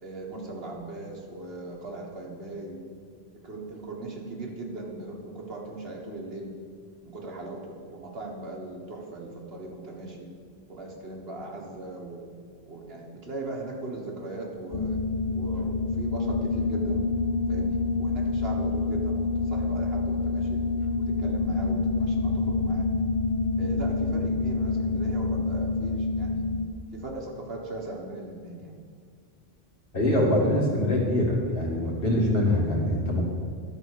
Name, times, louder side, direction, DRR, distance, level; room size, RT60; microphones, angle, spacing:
voice 1, 0.0-2.8 3.4-6.5 7.0-10.3 10.7-12.2 12.7-15.0 15.3-17.0 17.5-20.6 21.0-22.9 23.6-26.5 26.9-28.8, right 2 dB, 75° right, -1 dB, 1.7 m, -38 dB
sound 1, 14.7-26.7, left 3 dB, 35° left, 0.7 m, -27 dB
voice 2, 29.9-33.2, left 1 dB, 60° left, -3 dB, 2.2 m, -24 dB
12.0 x 4.8 x 6.4 m, 2.1 s
omnidirectional pair, 1.0 m